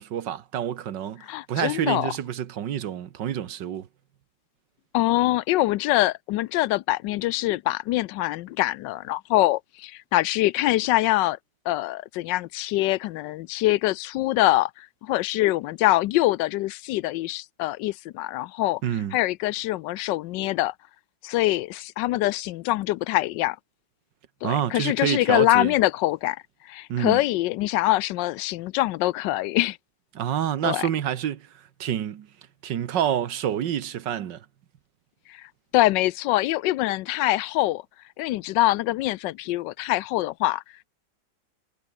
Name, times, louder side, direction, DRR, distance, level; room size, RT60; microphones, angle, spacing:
voice 1, 0.0-1.2 1.5-3.9 18.8-19.2 24.4-25.7 26.9-27.2 30.2-31.5 31.8-32.3 32.6-34.5, right 10 dB, 85° right, 1.8 m, -27 dB
voice 2, 1.2-2.1 4.9-11.4 11.7-18.8 19.1-20.7 21.2-23.6 24.4-29.8 30.6-30.9 35.3-35.5 35.7-37.8 38.2-40.9, left 17 dB, 90° left, 1.3 m, -24 dB
omnidirectional pair, 1.9 m